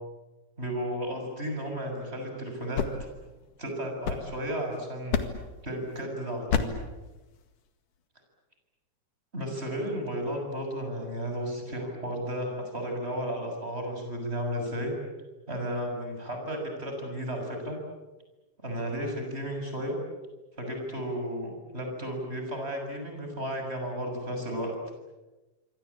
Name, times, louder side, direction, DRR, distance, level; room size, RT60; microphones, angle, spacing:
voice 1, 0.6-2.8 3.6-5.2 5.6-6.8 9.3-14.9 15.5-17.8 18.6-20.0 20.6-24.7, equal, 20° right, 3 dB, 7.3 m, -33 dB
sound 1, 2.5-4.7 5.1-5.6 6.5-6.9, left 6 dB, 75° left, 3.4 m, -31 dB
27.0 x 25.0 x 8.6 m, 1.1 s
omnidirectional pair, 3.7 m